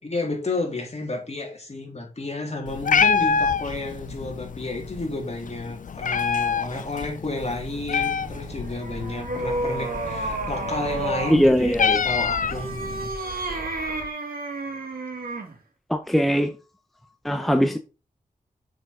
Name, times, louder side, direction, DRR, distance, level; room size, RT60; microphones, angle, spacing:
voice 1, 0.0-11.7 12.0-13.1, left 2 dB, 45° left, 3.0 m, -31 dB
Meow, 2.7-13.1, left 6 dB, 60° left, 0.4 m, -27 dB
sound 1, 7.4-14.1, right 4 dB, 70° right, 4.1 m, -41 dB
sound 2, 8.5-11.5 12.4-15.6, right 2 dB, 90° right, 2.3 m, -31 dB
voice 2, 11.3-12.0 15.9-16.5 17.2-17.8, equal, ahead, 0.7 m, -20 dB
6.9 x 6.3 x 3.7 m
wide cardioid pair, 70°, 15 cm